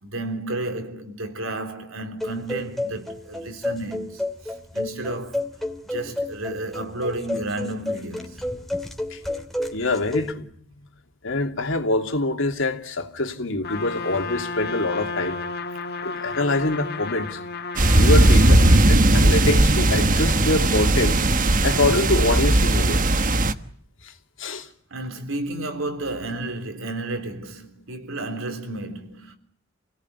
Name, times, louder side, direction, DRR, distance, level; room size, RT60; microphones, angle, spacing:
voice 1, 0.0-5.5 5.9-8.4 24.9-29.4, right 2 dB, 80° right, 3.6 m, -32 dB
sound 1, 2.2-10.3, left 1 dB, ahead, 2.7 m, -31 dB
voice 2, 9.1-9.4 9.7-10.5 11.2-15.4 16.0-17.4 17.9-21.2 21.6-23.0 24.4-24.7, left 2 dB, 70° left, 2.9 m, -25 dB
Trumpet, 13.6-18.9, left 4 dB, 55° left, 1.8 m, -32 dB
sound 2, 17.8-23.5, right 1 dB, 40° right, 1.3 m, -17 dB
28.5 x 17.5 x 9.7 m
head